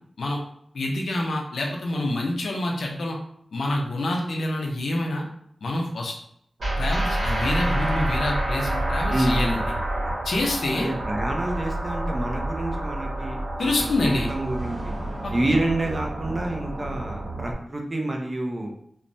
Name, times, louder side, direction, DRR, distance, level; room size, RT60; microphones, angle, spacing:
voice 1, 0.7-3.2 3.5-5.3 5.6-6.1 6.8-9.6 10.2-10.9 13.6-14.3 15.2-15.3, left 1 dB, 85° left, 0 dB, 0.5 m, -26 dB
sound 1, 6.6-17.5, right 1 dB, 70° right, 1.1 m, -28 dB
voice 2, 9.1-9.6 10.7-14.9 15.3-18.7, right 1 dB, 30° right, 2 dB, 0.5 m, -28 dB
3.0 x 2.1 x 2.6 m, 0.69 s
wide cardioid pair, 120°, 0 cm